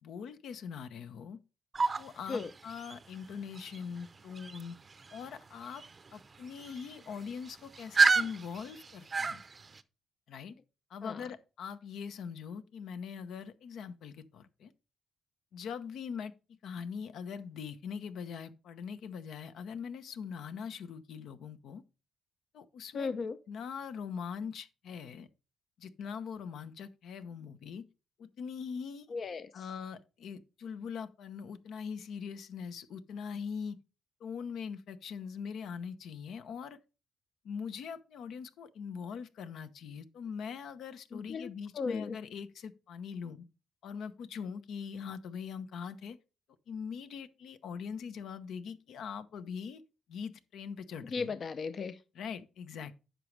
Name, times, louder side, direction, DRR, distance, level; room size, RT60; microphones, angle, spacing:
voice 1, 0.0-1.4 2.0-4.8 5.1-5.8 6.1-9.4 10.3-10.6 10.9-14.7 15.5-21.8 22.5-23.2 23.5-25.3 25.8-27.9 28.2-29.1 29.5-33.8 34.2-36.8 37.4-43.4 43.8-46.2 46.7-49.8 50.1-51.3 52.1-52.9, left 6 dB, 75° left, 0.8 m, -42 dB
sound 1, 1.7-9.8, right 4 dB, 35° right, 0.6 m, -33 dB
voice 2, 22.9-23.4 29.1-29.6 41.1-42.2 51.0-52.0, left 4 dB, 45° left, 0.6 m, -36 dB
10.0 x 6.1 x 3.3 m
cardioid pair, 90°, 0 cm